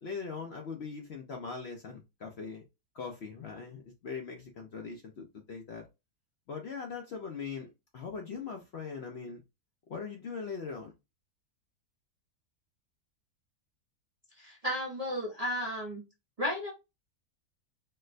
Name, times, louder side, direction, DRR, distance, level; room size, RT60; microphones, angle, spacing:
voice 1, 0.0-2.6 2.9-5.9 6.5-9.4 9.9-10.9, left 5 dB, 60° left, 0.7 m, -41 dB
voice 2, 14.4-16.0 16.4-16.7, equal, 35° right, 0.6 m, -33 dB
4.2 x 2.1 x 2.4 m
omnidirectional pair, 1.6 m